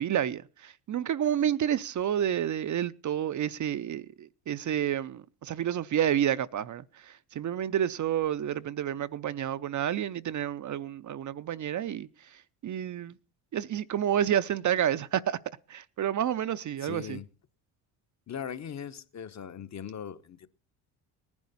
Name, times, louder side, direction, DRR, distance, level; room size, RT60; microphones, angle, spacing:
voice 1, 0.0-13.2 13.5-15.4 15.7-17.2, right 10 dB, 40° right, 0.6 m, -30 dB
voice 2, 16.8-17.3 18.3-20.5, left 8 dB, 35° left, 1.0 m, -39 dB
18.5 x 10.5 x 4.1 m
supercardioid pair, 70°, 46 cm